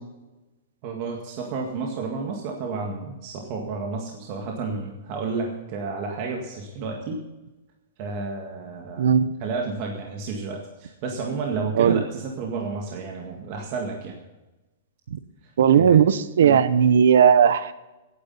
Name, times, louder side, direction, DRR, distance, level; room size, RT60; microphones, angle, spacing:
voice 1, 0.8-7.2 8.0-9.1 9.4-14.1 15.7-16.0 16.4-16.6, right 4 dB, 30° right, 0 dB, 1.9 m, -31 dB
voice 2, 9.0-9.3 11.8-12.0 15.6-17.7, right 8 dB, 75° right, 14 dB, 1.0 m, -17 dB
16.5 x 9.9 x 5.6 m, 1.1 s
supercardioid pair, 175°, 0 cm